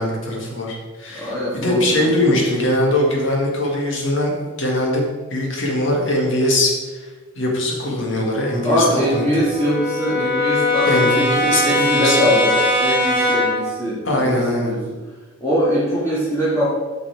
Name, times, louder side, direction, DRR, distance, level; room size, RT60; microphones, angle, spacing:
voice 1, 0.0-7.1 7.4-9.2 10.9-12.2 14.0-14.8, left 1 dB, 65° left, -1 dB, 2.1 m, -21 dB
voice 2, 1.1-1.8 2.2-2.3 8.6-14.8 15.4-16.6, equal, 15° left, -10 dB, 2.4 m, -22 dB
Brass instrument, 8.2-13.7, left 1 dB, 45° left, 1.9 m, -21 dB
8.3 x 5.9 x 4.9 m, 1.3 s
head